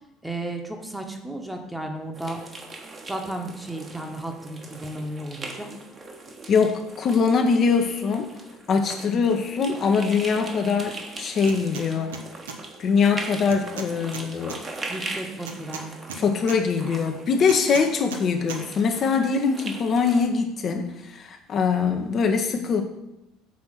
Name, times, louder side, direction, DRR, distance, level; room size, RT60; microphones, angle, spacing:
voice 1, 0.2-2.4 3.1-5.8 14.9-15.9, right 1 dB, 5° right, 3 dB, 1.1 m, -34 dB
sound 1, 2.1-20.2, right 3 dB, 30° right, 1.2 m, -40 dB
voice 2, 6.5-8.3 8.7-12.1 12.8-14.6 16.1-22.8, left 5 dB, 45° left, 4 dB, 0.7 m, -23 dB
sound 2, 11.4-11.9 12.1-12.6 13.5-14.6 15.5-16.6 17.5-18.2 18.5-18.6, right 5 dB, 75° right, 0.6 m, -36 dB
6.3 x 4.2 x 5.7 m, 0.91 s
figure-of-eight pair, 60°, 0 cm